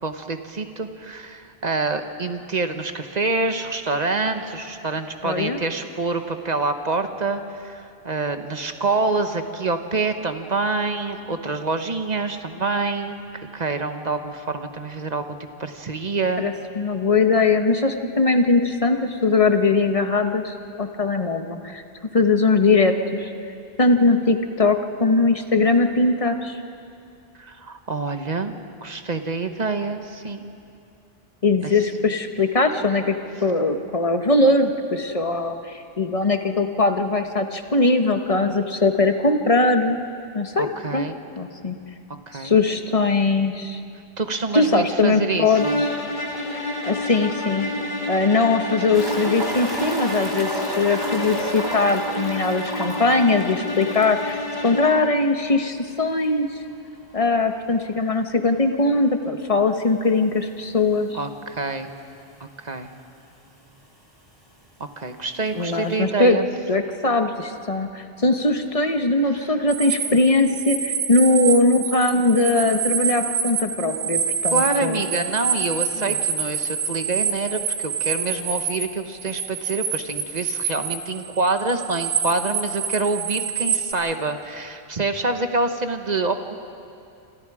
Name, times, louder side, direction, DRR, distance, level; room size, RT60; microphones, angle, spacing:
voice 1, 0.0-16.5 27.4-28.5 28.8-30.5 31.6-31.7 40.6-41.2 42.3-42.5 44.2-45.9 61.1-61.9 62.4-62.9 65.0-66.4 69.3-69.6 74.5-86.5, right 3 dB, 45° right, 7 dB, 1.2 m, -26 dB
voice 2, 5.2-5.6 16.4-21.8 22.1-23.3 23.8-26.6 31.4-33.2 33.4-40.0 40.3-41.1 41.4-41.8 42.4-43.8 44.5-45.6 46.8-54.4 54.6-56.5 57.1-61.1 65.5-66.4 66.7-75.0, left 3 dB, 35° left, 6 dB, 1.3 m, -20 dB
sound 1, 45.5-55.2, left 1 dB, 50° left, 1.8 m, -29 dB
sound 2, 48.9-54.3 54.6-54.7 55.0-55.1 57.9-58.0 59.7-59.8 60.6-60.7 60.9-61.0 61.9-62.0 62.2-62.8 63.7-63.8, right 1 dB, 25° right, 3.7 m, -31 dB
sound 3, 69.7-78.8 79.1-83.9, right 7 dB, 85° right, 2.2 m, -27 dB
28.5 x 26.0 x 4.9 m, 2.5 s
omnidirectional pair, 1.1 m